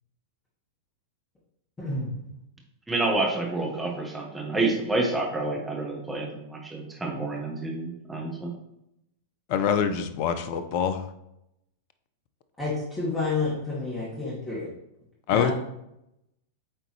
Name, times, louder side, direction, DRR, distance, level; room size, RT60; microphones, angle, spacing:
voice 1, 1.8-2.1 12.6-14.7 15.3-15.5, left 3 dB, 15° left, -8 dB, 2.3 m, -29 dB
voice 2, 2.9-8.5, right 2 dB, 10° right, -1 dB, 1.6 m, -28 dB
voice 3, 9.5-11.1 15.3-15.5, left 7 dB, 50° left, 11 dB, 0.6 m, -25 dB
8.5 x 3.8 x 3.2 m, 0.83 s
figure-of-eight pair, 95°, 0 cm